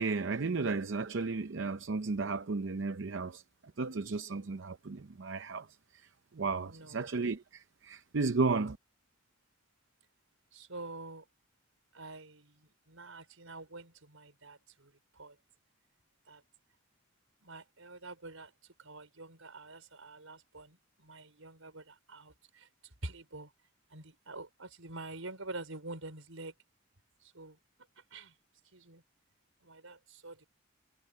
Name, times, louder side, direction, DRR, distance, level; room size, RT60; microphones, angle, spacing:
voice 1, 0.0-3.4 3.8-5.7 5.9-8.8, right 4 dB, 65° right, 0.6 m, -34 dB
voice 2, 6.6-7.0 10.5-11.3 11.9-15.4 16.3-16.4 17.4-18.5 18.8-23.5 23.9-26.5 27.2-27.6 28.1-28.3 28.6-29.0 29.6-30.5, right 2 dB, 85° right, 5.1 m, -47 dB
head